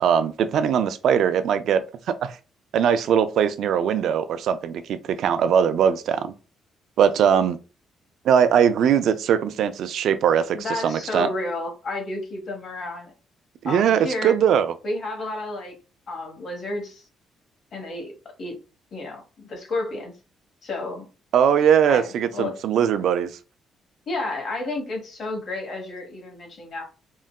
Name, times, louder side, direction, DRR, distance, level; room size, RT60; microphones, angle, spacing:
voice 1, 0.0-2.4 2.7-6.3 7.0-7.6 8.2-11.3 13.6-14.7 21.3-23.4, right 8 dB, 75° right, 0.3 m, -21 dB
voice 2, 10.5-13.1 13.6-14.4 14.8-15.8 16.1-17.0 17.7-18.1 18.4-18.6 18.9-20.1 20.6-21.1 21.9-22.5 24.1-26.8, left 2 dB, 55° left, 1.3 m, -31 dB
3.7 x 2.1 x 2.3 m
cardioid pair, 90°, 0 cm